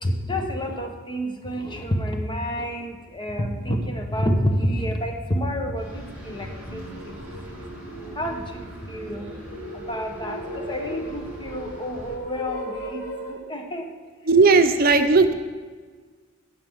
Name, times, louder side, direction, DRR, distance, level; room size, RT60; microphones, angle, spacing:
voice 1, 0.0-7.1 7.4-7.5 8.2-9.3 9.7-13.9, equal, 20° left, 3 dB, 1.1 m, -29 dB
sound 1, 4.7-4.8 5.3-13.3, equal, 85° left, 2.9 m, -38 dB
sound 2, 5.8-12.2, equal, 5° right, 3.6 m, -43 dB
voice 2, 14.3-15.3, right 4 dB, 45° right, 7 dB, 0.7 m, -16 dB
17.0 x 6.8 x 3.7 m, 1.5 s
head